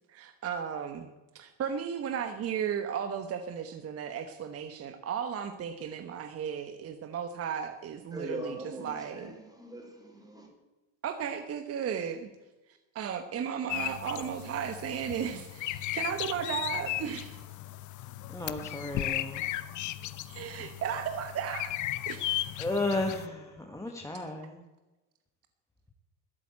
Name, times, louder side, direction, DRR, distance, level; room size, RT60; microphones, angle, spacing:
voice 1, 0.1-9.3 11.0-12.3 12.9-17.4 20.2-21.8 22.1-22.6, right 8 dB, 35° right, 1.1 m, -35 dB
voice 2, 8.1-10.5, right 1 dB, 10° right, 4.0 m, -41 dB
sound 1, 13.7-23.3, left 14 dB, 50° left, 0.8 m, -36 dB
voice 3, 18.3-19.5 20.6-20.7 22.6-24.6, left 2 dB, 10° left, 1.6 m, -33 dB
13.0 x 8.4 x 8.6 m
supercardioid pair, 115°, 39 cm